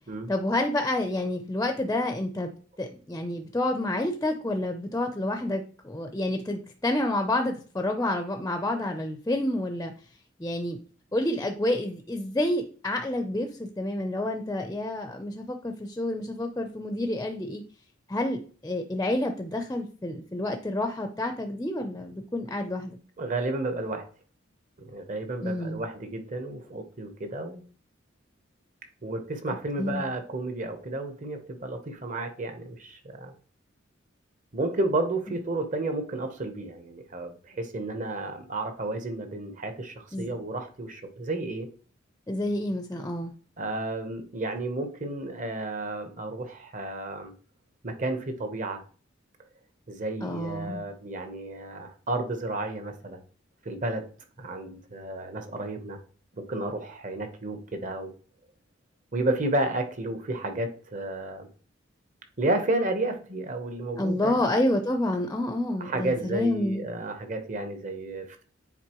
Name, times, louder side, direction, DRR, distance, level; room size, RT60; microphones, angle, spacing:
voice 1, 0.3-2.5 2.8-9.9 10.4-10.8 11.1-17.6 18.1-23.0 25.4-25.8 29.8-30.0 40.1-40.3 42.3-43.3 50.2-50.9 64.0-66.9, left 1 dB, 15° left, 5 dB, 0.5 m, -29 dB
voice 2, 23.2-24.1 24.8-27.6 29.0-33.3 34.5-41.7 43.6-47.3 47.8-48.8 49.9-53.2 53.6-54.0 54.4-56.0 56.4-58.1 59.1-61.5 62.4-64.4 65.8-68.4, right 2 dB, 40° right, 7 dB, 1.0 m, -32 dB
9.5 x 4.1 x 3.0 m, 0.41 s
head